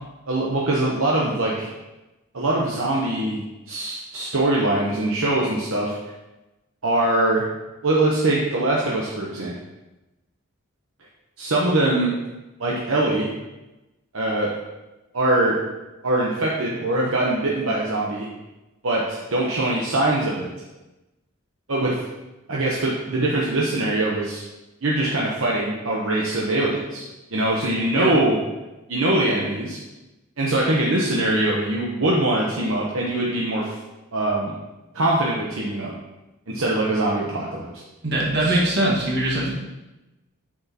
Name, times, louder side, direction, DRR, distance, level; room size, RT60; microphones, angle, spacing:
voice 1, 0.3-1.7 2.3-5.9 6.8-7.4 7.8-9.5 11.4-12.1 12.6-13.3 14.1-14.5 15.1-15.6 16.0-18.3 18.8-20.5 21.7-22.0 22.5-24.4 24.8-27.0 27.3-28.4 28.9-29.8 30.4-33.8 34.1-34.5 34.9-35.9 36.5-37.8 38.4-38.6, right 1 dB, 70° right, -4 dB, 0.9 m, -22 dB
voice 2, 38.0-39.5, right 1 dB, 50° right, -4 dB, 1.8 m, -22 dB
8.6 x 6.1 x 2.9 m, 1.0 s
head